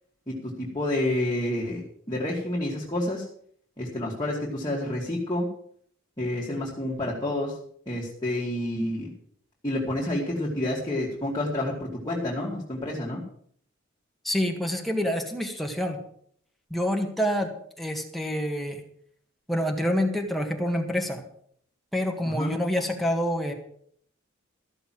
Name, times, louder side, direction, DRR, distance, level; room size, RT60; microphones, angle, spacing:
voice 1, 0.3-1.8 2.1-3.3 3.8-5.5 6.2-7.6 7.9-9.1 9.6-13.2 22.2-22.5, left 1 dB, 20° left, -5 dB, 2.5 m, -29 dB
voice 2, 14.2-16.0 16.7-17.5 17.8-18.8 19.5-21.2 21.9-23.5, equal, ahead, 2 dB, 1.7 m, -27 dB
14.0 x 6.8 x 7.7 m, 0.64 s
head